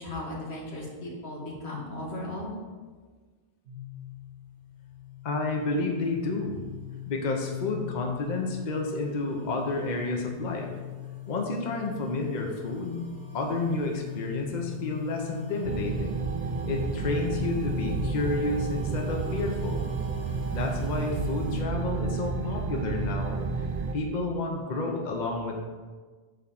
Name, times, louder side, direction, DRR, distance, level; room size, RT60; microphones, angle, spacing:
voice 1, 0.0-2.6, left 1 dB, 90° left, -4 dB, 2.1 m, -36 dB
sound 1, 3.7-21.6, left 12 dB, 70° right, 1.5 m, -41 dB
voice 2, 5.2-6.6 7.1-10.7 11.3-13.1 13.3-16.2 16.7-19.9 20.5-23.4 23.9-25.6, left 2 dB, 45° left, 1 dB, 0.9 m, -30 dB
sound 2, 15.6-23.9, right 5 dB, 50° right, 0.6 m, -31 dB
8.6 x 3.7 x 5.8 m, 1.4 s
omnidirectional pair, 1.1 m